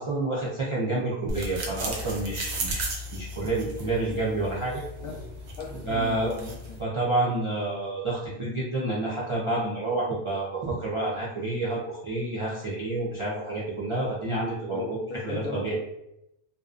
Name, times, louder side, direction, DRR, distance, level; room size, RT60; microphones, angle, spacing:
voice 1, 0.0-4.8 5.8-6.3 6.8-15.0 15.2-15.8, right 2 dB, 50° right, -7 dB, 0.3 m, -29 dB
sound 1, 1.3-6.8, right 1 dB, 80° right, 0.9 m, -35 dB
voice 2, 5.6-6.8 14.7-15.8, left 4 dB, 70° left, 0 dB, 0.8 m, -36 dB
2.5 x 2.1 x 2.4 m, 0.83 s
omnidirectional pair, 1.1 m